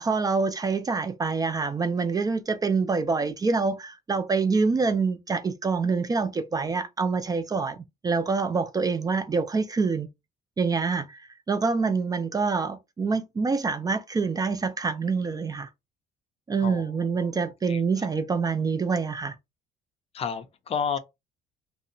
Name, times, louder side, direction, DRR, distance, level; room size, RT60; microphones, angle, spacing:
voice 1, 0.0-10.1 10.6-11.2 11.5-15.7 16.5-19.4, right 4 dB, 20° right, 0.3 m, -26 dB
voice 2, 17.7-18.1 20.1-21.0, left 6 dB, 35° left, 0.5 m, -31 dB
2.7 x 2.1 x 2.5 m
cardioid pair, 110°, 17 cm